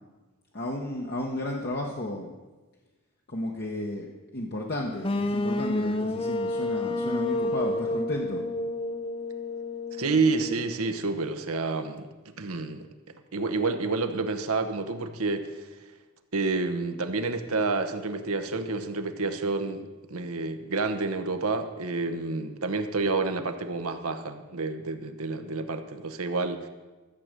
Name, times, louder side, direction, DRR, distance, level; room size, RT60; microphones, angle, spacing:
voice 1, 0.5-2.3 3.3-4.1 4.3-8.4, left 1 dB, 45° left, -1 dB, 1.1 m, -33 dB
sound 1, 5.0-10.9, left 2 dB, 25° left, 0.5 m, -30 dB
voice 2, 10.0-12.1 12.4-12.8 13.3-15.7 16.3-26.7, right 3 dB, 75° right, 7 dB, 1.0 m, -29 dB
14.0 x 7.7 x 6.6 m, 1.2 s
head